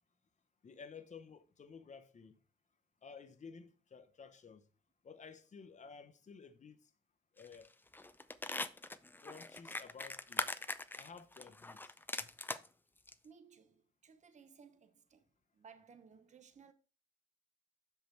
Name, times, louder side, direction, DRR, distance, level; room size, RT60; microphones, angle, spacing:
voice 1, 0.6-2.3 3.0-4.6 5.0-6.9 7.4-7.7 9.2-10.6 10.9-11.9 12.2-12.3, left 5 dB, 35° left, 0.8 m, -54 dB
sound 1, 7.4-7.7 7.9-12.7 13.1-13.2, left 2 dB, 10° left, 0.4 m, -41 dB
voice 2, 13.2-15.3 15.5-16.7, right 6 dB, 35° right, 0.8 m, -60 dB
6.1 x 5.4 x 4.4 m
cardioid pair, 90°, 20 cm